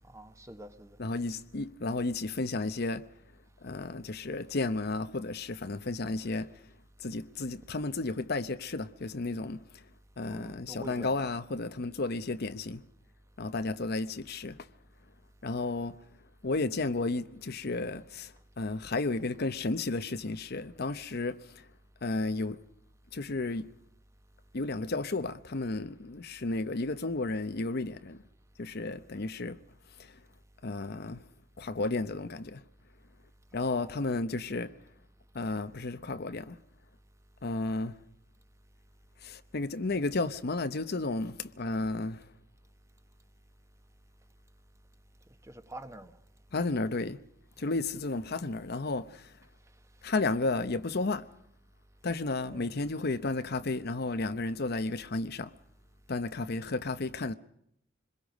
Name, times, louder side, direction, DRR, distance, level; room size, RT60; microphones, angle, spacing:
voice 1, 0.1-1.0 10.2-11.3 33.6-34.0 45.5-46.1 47.6-47.7 52.5-52.8, right 1 dB, 15° right, 1.3 m, -47 dB
voice 2, 1.0-3.0 3.6-6.5 7.0-9.8 10.2-12.8 13.4-14.7 15.4-15.9 16.4-21.6 22.0-22.6 23.1-23.7 24.5-28.2 28.6-29.6 30.0-30.2 30.6-31.2 31.6-32.6 33.5-34.7 35.3-36.6 37.4-38.0 39.2-42.2 46.5-47.2 47.6-49.3 50.0-51.3 52.0-55.5 56.1-57.3, left 3 dB, 55° left, 0.8 m, -33 dB
25.5 x 21.5 x 5.2 m
head